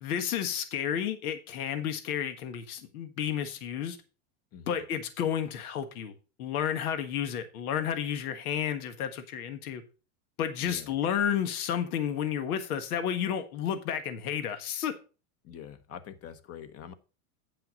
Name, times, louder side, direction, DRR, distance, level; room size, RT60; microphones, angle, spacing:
voice 1, 0.0-4.0 4.7-6.1 6.4-9.8 10.4-14.9, left 9 dB, 85° left, 1.5 m, -31 dB
voice 2, 4.5-4.9 10.6-11.0 15.4-16.9, left 8 dB, 35° left, 1.0 m, -45 dB
9.4 x 5.7 x 5.0 m
supercardioid pair, 135°, 43 cm